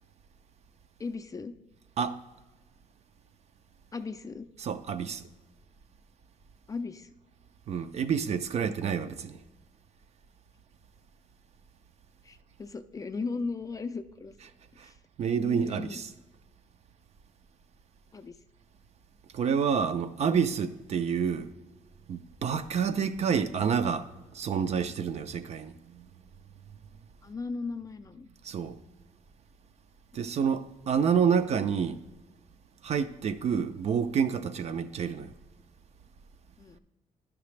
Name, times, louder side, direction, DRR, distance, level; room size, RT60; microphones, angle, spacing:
voice 1, 1.0-1.5 3.9-4.5 6.7-7.1 12.2-14.3 14.8-14.9 15.4-16.0 18.1-18.3 27.2-28.3 36.6-36.8, left 4 dB, 25° left, 0.3 m, -37 dB
voice 2, 4.6-5.3 7.7-9.4 14.8-14.9 15.2-16.1 19.3-21.5 22.1-26.0 28.4-28.8 30.1-32.0 32.8-35.3, right 7 dB, 50° right, 0.4 m, -28 dB
10.0 x 5.8 x 3.2 m
cardioid pair, 135°, 14 cm